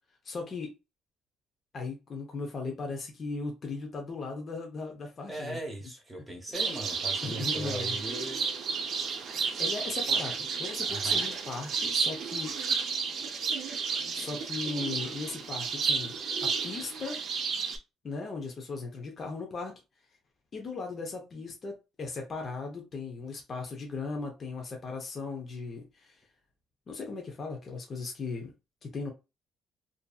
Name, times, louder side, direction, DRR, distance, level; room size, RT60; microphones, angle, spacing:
voice 1, 0.2-0.7 1.7-5.6 7.2-8.0 9.1-9.3 9.6-12.6 14.1-17.2 18.0-19.7 20.5-26.2 26.9-28.5 28.8-29.1, left 4 dB, 35° left, 0.6 m, -37 dB
voice 2, 5.3-8.4 10.9-11.3, right 1 dB, 10° right, 1.0 m, -39 dB
sound 1, 6.5-17.8, right 5 dB, 55° right, 0.6 m, -31 dB
2.6 x 2.6 x 2.3 m
cardioid pair, 140°, 0 cm